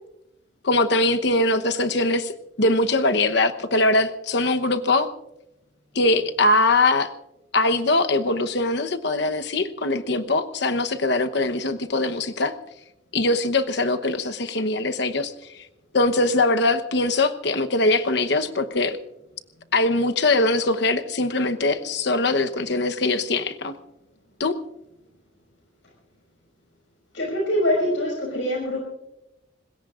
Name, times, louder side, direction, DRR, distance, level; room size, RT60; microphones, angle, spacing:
voice 1, 0.6-2.3 2.6-5.1 5.9-7.1 7.5-12.5 13.1-15.3 15.9-19.0 19.7-23.7 24.4-24.5, left 2 dB, 60° left, 8 dB, 1.0 m, -22 dB
voice 2, 27.1-28.8, left 1 dB, 80° left, -2 dB, 5.7 m, -24 dB
25.5 x 20.5 x 2.5 m, 0.91 s
head